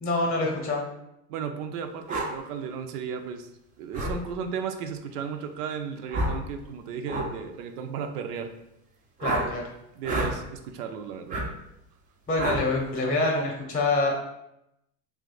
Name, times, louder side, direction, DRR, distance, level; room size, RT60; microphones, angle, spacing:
voice 1, 0.0-0.9 9.2-9.6 12.3-14.1, left 2 dB, 20° left, 0 dB, 0.7 m, -26 dB
voice 2, 1.3-3.5 3.8-8.5 9.4-9.7 10.0-11.4, right 6 dB, 80° right, 7 dB, 0.6 m, -34 dB
sound 1, 2.1-2.3 3.9-4.2 6.1-6.4 7.1-7.3 9.2-9.5 10.0-10.3 11.3-11.5 12.4-12.6, right 1 dB, 20° right, 0.4 m, -28 dB
2.5 x 2.4 x 3.8 m, 0.84 s
hypercardioid pair, 100°, 46 cm